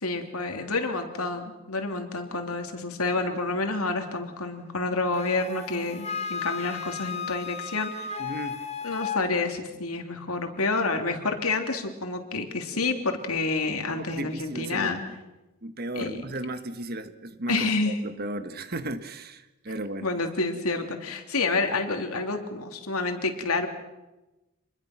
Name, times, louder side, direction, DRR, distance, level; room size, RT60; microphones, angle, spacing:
voice 1, 0.0-8.2 8.8-15.0 15.9-16.2 17.5-18.0 20.0-23.7, left 3 dB, 85° left, 4 dB, 3.2 m, -29 dB
Wind instrument woodwind instrument, 5.2-9.2, left 6 dB, 30° left, 1.4 m, -34 dB
voice 2, 8.2-8.7 13.9-14.9 15.6-20.1, right 1 dB, 45° right, 10 dB, 1.4 m, -35 dB
28.0 x 21.5 x 6.1 m, 1.0 s
head